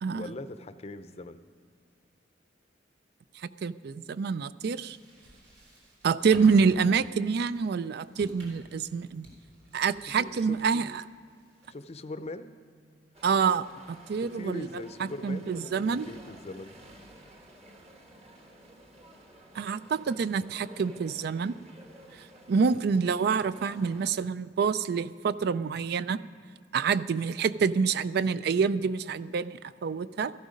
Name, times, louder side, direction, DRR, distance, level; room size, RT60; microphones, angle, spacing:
voice 1, 0.1-1.4 10.2-11.0 11.7-12.5 14.2-16.7, left 2 dB, 35° left, 11 dB, 0.5 m, -41 dB
voice 2, 3.4-5.0 6.0-9.3 9.7-11.0 13.2-14.7 15.0-16.1 19.6-21.6 22.5-26.2 26.7-30.3, right 5 dB, 60° right, 16 dB, 0.4 m, -27 dB
sound 1, 4.6-11.9, equal, 80° right, 3.7 m, -52 dB
sound 2, 13.1-24.1, right 1 dB, 35° right, 1.4 m, -52 dB
13.5 x 12.0 x 5.2 m, 2.2 s
head